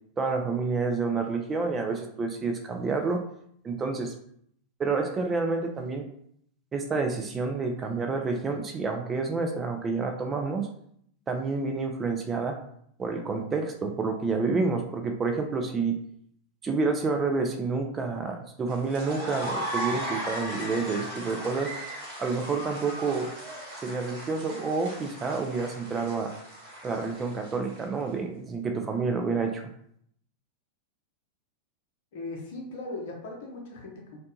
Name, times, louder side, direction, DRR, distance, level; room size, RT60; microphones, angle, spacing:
voice 1, 0.2-3.2 3.6-4.1 4.8-6.0 6.7-10.7 11.3-12.6 13.0-16.0 16.6-21.7 22.2-23.3 23.8-26.3 26.8-29.6, right 4 dB, 20° right, 4 dB, 0.3 m, -29 dB
sound 1, 18.7-28.0, right 1 dB, 50° right, 1.1 m, -37 dB
voice 2, 32.1-34.2, left 2 dB, 55° left, 0 dB, 0.7 m, -38 dB
2.6 x 2.1 x 2.7 m, 0.67 s
figure-of-eight pair, 90°, 0 cm